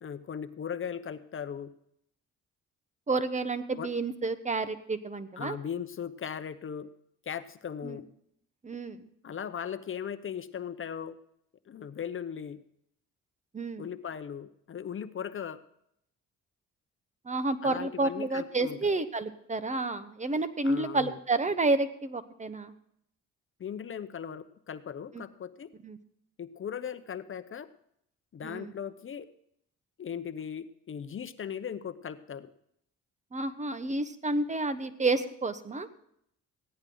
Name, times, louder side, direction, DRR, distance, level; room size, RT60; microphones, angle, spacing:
voice 1, 0.0-1.7 3.7-3.9 5.4-6.9 7.3-8.1 9.2-11.2 11.7-12.6 13.8-15.6 17.6-18.9 20.6-21.2 23.6-25.7 26.4-27.7 28.3-29.3 30.0-32.5, left 8 dB, 45° left, 12 dB, 0.8 m, -38 dB
voice 2, 3.1-5.6 7.8-8.0 8.6-9.0 13.5-13.9 17.2-22.7 25.1-25.2 25.8-26.0 28.4-28.7 33.3-35.9, right 2 dB, 25° right, 11 dB, 1.1 m, -30 dB
15.5 x 10.5 x 3.9 m, 0.71 s
cardioid pair, 90°, 30 cm